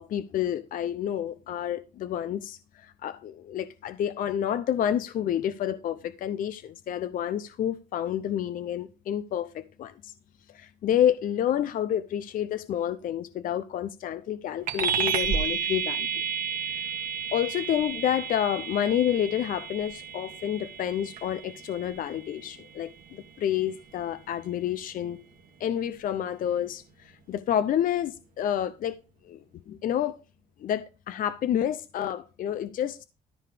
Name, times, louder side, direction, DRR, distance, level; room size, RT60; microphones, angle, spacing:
voice 1, 0.0-10.1 10.5-16.2 16.8-16.9 17.3-25.2 25.6-29.0 29.2-30.1 30.6-33.0, left 10 dB, 55° left, 0.6 m, -29 dB
sound 1, 14.7-24.5, right 7 dB, 55° right, 1.7 m, -32 dB
13.5 x 4.9 x 5.1 m
cardioid pair, 110°, 17 cm